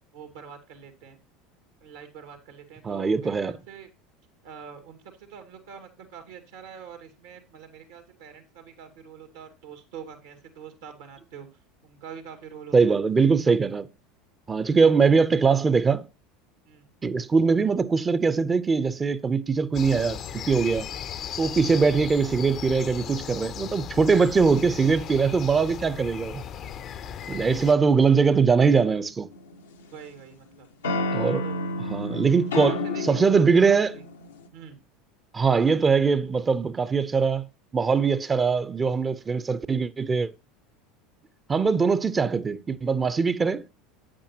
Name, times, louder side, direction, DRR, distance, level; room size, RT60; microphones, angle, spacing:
voice 1, 0.1-1.2 1.8-3.9 4.4-11.5 11.8-13.0 16.6-16.9 29.9-30.7 31.4-31.8 32.3-33.7 34.5-34.8, right 7 dB, 75° right, 2.2 m, -45 dB
voice 2, 2.8-3.6 12.7-13.9 14.5-16.1 17.0-20.9 21.4-26.4 27.3-29.3 31.1-31.4 31.9-32.8 33.1-33.9 35.3-37.4 37.7-40.3 41.5-43.7, right 5 dB, 25° right, 0.7 m, -22 dB
sound 1, 19.7-27.7, left 9 dB, 45° left, 0.7 m, -37 dB
sound 2, 29.3-30.2 30.8-34.5, left 2 dB, 85° left, 1.0 m, -31 dB
8.7 x 8.4 x 2.9 m
hypercardioid pair, 80°, 0 cm